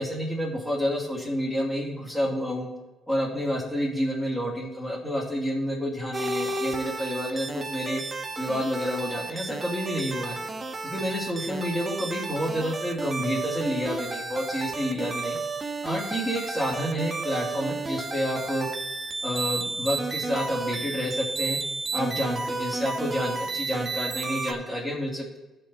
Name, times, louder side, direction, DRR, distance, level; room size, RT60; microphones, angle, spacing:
voice 1, 0.0-2.7 3.1-8.0 8.4-10.4 10.8-15.4 15.8-18.7 19.2-21.6 21.9-25.4, equal, 5° left, -7 dB, 2.9 m, -29 dB
sound 1, 6.1-24.5, right 3 dB, 30° right, 1.2 m, -32 dB
16.0 x 5.4 x 4.2 m, 1.1 s
cardioid pair, 90°, 0 cm